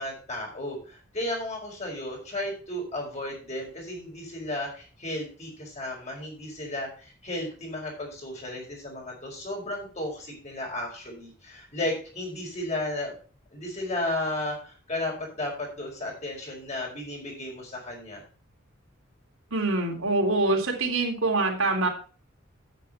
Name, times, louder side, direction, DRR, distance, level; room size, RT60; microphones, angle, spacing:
voice 1, 0.0-13.1 13.5-18.2, left 1 dB, 35° left, -1 dB, 4.9 m, -34 dB
voice 2, 19.5-21.9, right 2 dB, 85° right, 1 dB, 3.3 m, -25 dB
9.2 x 8.6 x 4.4 m, 0.39 s
head